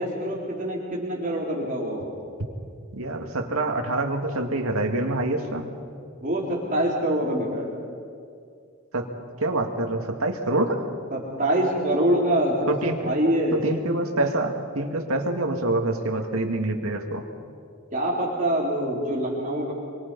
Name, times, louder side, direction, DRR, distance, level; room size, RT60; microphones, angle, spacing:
voice 1, 0.0-2.1 6.2-7.7 11.1-13.6 17.9-19.7, right 1 dB, 35° right, -4 dB, 3.7 m, -25 dB
voice 2, 2.9-5.7 8.9-9.1 9.4-10.8 12.7-13.1 13.5-17.3, right 2 dB, 85° right, 3 dB, 2.4 m, -26 dB
27.0 x 24.0 x 5.6 m, 2.3 s
head